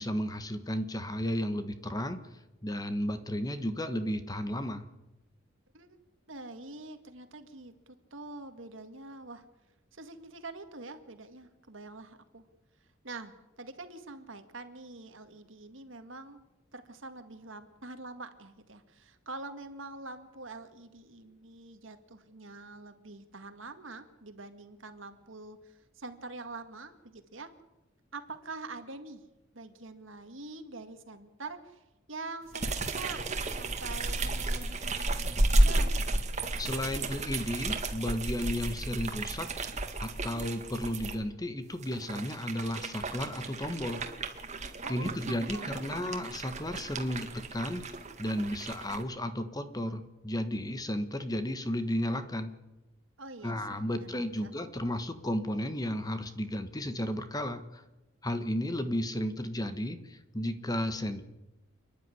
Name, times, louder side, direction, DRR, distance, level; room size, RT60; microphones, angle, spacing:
voice 1, 0.0-2.2 2.6-4.8 36.6-39.5 40.0-44.0 44.9-47.8 48.2-52.5 53.4-57.8 58.2-61.2, left 1 dB, 20° left, 9 dB, 1.4 m, -33 dB
voice 2, 6.3-9.4 9.9-12.5 13.0-16.5 16.7-27.5 28.1-29.2 29.5-36.3 44.8-46.1 53.2-54.5, right 3 dB, 70° right, 8 dB, 2.1 m, -45 dB
sound 1, 32.5-41.2 41.7-49.0, right 2 dB, 35° right, 2.0 m, -32 dB
28.5 x 11.0 x 9.9 m, 1.0 s
head